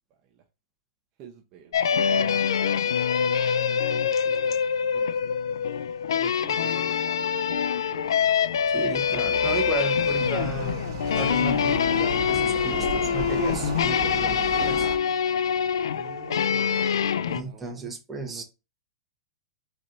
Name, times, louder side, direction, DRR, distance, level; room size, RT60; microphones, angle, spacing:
voice 1, 0.1-0.4 1.2-2.4 2.8-8.3 15.9-17.9 18.2-18.4, right 8 dB, 35° right, 1 dB, 0.9 m, -48 dB
sound 1, 1.7-17.4, left 7 dB, 90° left, 0.3 m, -25 dB
sound 2, 8.1-15.0, right 5 dB, 55° right, 1.5 m, -36 dB
voice 2, 8.7-10.8 11.1-14.9 17.3-18.4, right 4 dB, 10° right, 1 dB, 1.1 m, -34 dB
4.2 x 3.2 x 3.9 m, 0.27 s
hypercardioid pair, 140°, 2 cm